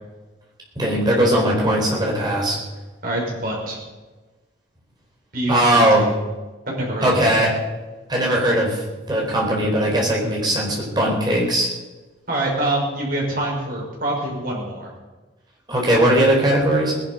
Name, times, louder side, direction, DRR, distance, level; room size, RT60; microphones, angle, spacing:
voice 1, 0.8-2.6 5.5-6.1 7.0-7.5 8.1-8.8 9.1-11.7 15.7-16.9, right 1 dB, 20° right, -2 dB, 4.6 m, -19 dB
voice 2, 3.0-3.8 5.3-6.1 6.7-7.5 12.3-14.9, right 1 dB, 45° right, -3 dB, 5.7 m, -25 dB
19.0 x 11.0 x 5.4 m, 1.2 s
head